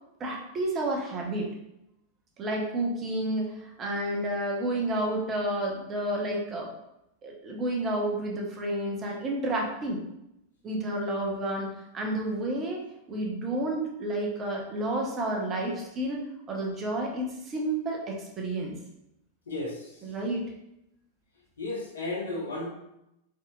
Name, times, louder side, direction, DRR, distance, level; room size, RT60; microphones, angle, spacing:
voice 1, 0.2-1.5 2.4-6.7 7.2-10.0 10.6-11.7 11.9-12.8 13.1-18.7 20.0-20.4, right 1 dB, 25° right, -1 dB, 0.9 m, -30 dB
voice 2, 19.5-20.0 21.6-22.7, left 2 dB, 70° left, -2 dB, 1.0 m, -34 dB
4.1 x 3.7 x 2.3 m, 0.84 s
figure-of-eight pair, 90°, 0 cm